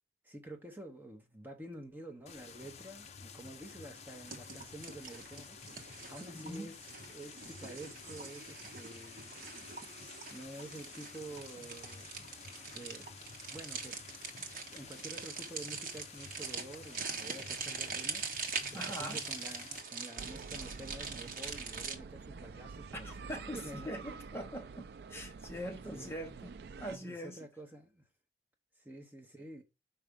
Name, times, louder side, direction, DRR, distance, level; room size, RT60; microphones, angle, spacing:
voice 1, 0.2-5.6 6.1-6.8 7.1-9.3 10.3-13.2 13.5-14.0 14.7-23.2 23.5-24.0 25.9-26.1 27.0-28.0 28.8-29.6, right 1 dB, 10° right, 0.9 m, -49 dB
sound 1, 2.3-19.8, left 5 dB, 35° left, 0.6 m, -51 dB
sound 2, 4.3-21.9, right 5 dB, 50° right, 1.2 m, -43 dB
voice 2, 6.3-6.7 18.7-19.2 23.0-27.4, equal, 15° left, 1.0 m, -43 dB
sound 3, 20.2-27.0, right 4 dB, 65° right, 0.4 m, -48 dB
5.8 x 4.8 x 5.2 m
head